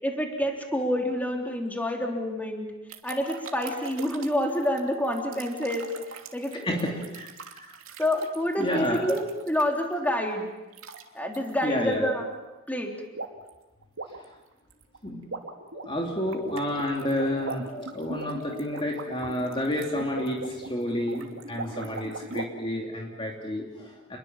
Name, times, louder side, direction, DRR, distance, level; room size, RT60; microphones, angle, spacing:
voice 1, 0.0-2.7 3.0-5.9 6.3-6.8 8.0-10.5 11.1-12.3 12.7-12.9, equal, 10° left, 1 dB, 3.5 m, -28 dB
sound 1, 2.9-9.9 10.7-11.0 11.3-11.5 13.1-13.5 13.8-22.5, right 3 dB, 70° right, 2.8 m, -40 dB
voice 2, 6.6-7.7 8.6-9.1 11.6-12.2 15.0-15.3 15.8-24.2, left 1 dB, 25° left, 0 dB, 2.9 m, -30 dB
29.0 x 22.0 x 7.4 m, 1.1 s
head